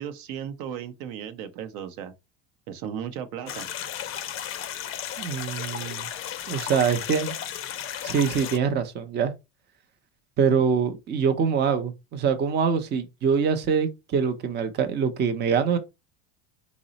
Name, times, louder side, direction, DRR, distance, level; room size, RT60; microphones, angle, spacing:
voice 1, 0.0-2.1 2.7-3.7, right 9 dB, 65° right, 0.7 m, -35 dB
sound 1, 3.5-8.6, left 10 dB, 35° left, 0.4 m, -34 dB
voice 2, 5.2-6.1 6.5-7.3 8.0-9.3 10.4-15.8, right 6 dB, 25° right, 0.5 m, -24 dB
3.9 x 2.0 x 3.9 m
cardioid pair, 135°, 39 cm